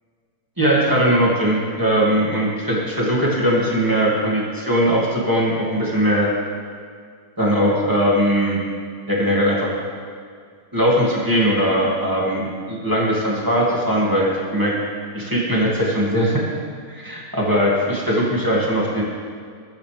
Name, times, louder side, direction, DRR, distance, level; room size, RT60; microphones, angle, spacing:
voice 1, 0.6-6.3 7.4-8.6 9.1-9.7 10.7-14.8 15.1-16.4 16.9-19.0, equal, 10° right, -5 dB, 2.3 m, -20 dB
20.5 x 8.9 x 3.5 m, 2.1 s
omnidirectional pair, 1.8 m